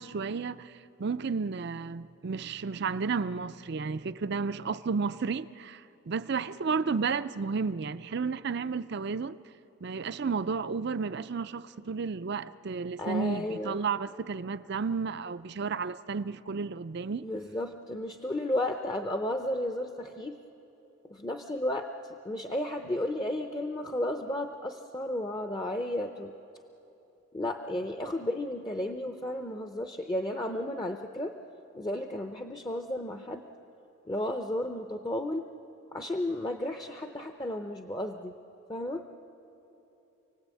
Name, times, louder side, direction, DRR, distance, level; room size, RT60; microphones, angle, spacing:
voice 1, 0.0-9.4 9.8-17.3, right 5 dB, 50° right, 0.5 m, -32 dB
voice 2, 13.0-13.8 17.2-20.4 21.1-26.3 27.3-31.3 31.7-33.5 34.1-35.5 35.9-38.4 38.7-39.0, left 1 dB, 20° left, 0.6 m, -33 dB
28.0 x 18.5 x 8.4 m
head